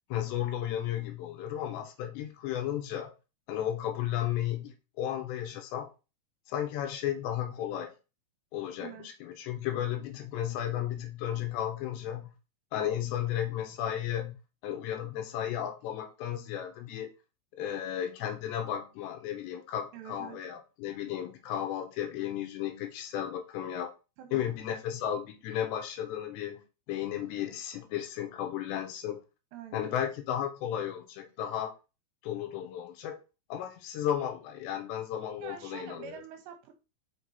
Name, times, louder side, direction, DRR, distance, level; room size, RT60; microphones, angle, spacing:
voice 1, 0.1-3.1 3.5-5.9 6.5-7.9 8.5-12.4 12.7-14.4 14.6-17.1 17.5-23.9 24.3-29.2 29.7-31.7 32.2-33.2 33.5-36.2, left 10 dB, 75° left, 2.9 m, -34 dB
voice 2, 19.9-20.4 24.2-24.5 29.5-29.9 35.4-36.7, right 9 dB, 75° right, 2.8 m, -45 dB
6.6 x 5.1 x 4.2 m
omnidirectional pair, 5.6 m